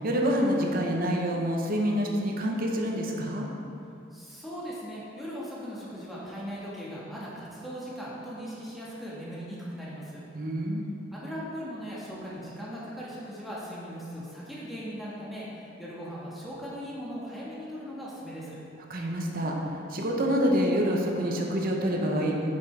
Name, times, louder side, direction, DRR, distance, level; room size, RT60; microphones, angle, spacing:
voice 1, 0.0-3.5 10.3-10.9 18.9-22.4, equal, 50° right, 0 dB, 0.8 m, -27 dB
voice 2, 4.1-10.2 11.1-18.6, equal, ahead, -8 dB, 1.3 m, -39 dB
7.7 x 5.4 x 3.3 m, 2.7 s
head